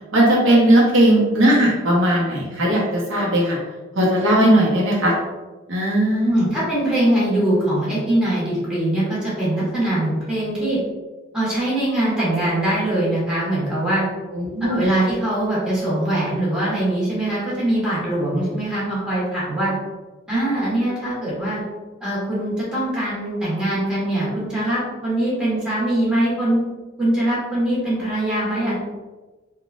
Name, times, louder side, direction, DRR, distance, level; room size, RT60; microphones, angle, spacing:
voice 1, 0.1-3.6 4.0-5.1 5.7-6.3 14.3-14.8, right 1 dB, 85° right, -4 dB, 0.9 m, -17 dB
voice 2, 6.2-10.8 11.3-14.0 14.6-19.7 20.3-21.6 22.0-26.6 27.0-28.8, right 1 dB, 5° right, -10 dB, 1.3 m, -22 dB
3.9 x 2.4 x 2.4 m, 1.2 s
head